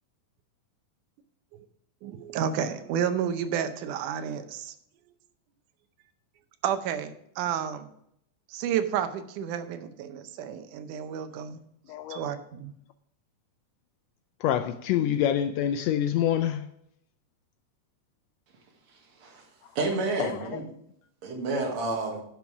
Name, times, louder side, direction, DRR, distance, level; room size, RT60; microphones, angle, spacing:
voice 1, 2.0-4.7 6.6-7.9 8.5-11.6 12.1-12.7, right 8 dB, 85° right, 2.3 m, -31 dB
voice 2, 11.9-12.2 14.4-16.7 19.6-19.7 20.2-20.6, left 10 dB, 90° left, 1.5 m, -26 dB
voice 3, 19.8-20.6 21.2-22.2, right 2 dB, 65° right, 3.0 m, -29 dB
10.5 x 6.2 x 4.7 m
omnidirectional pair, 3.5 m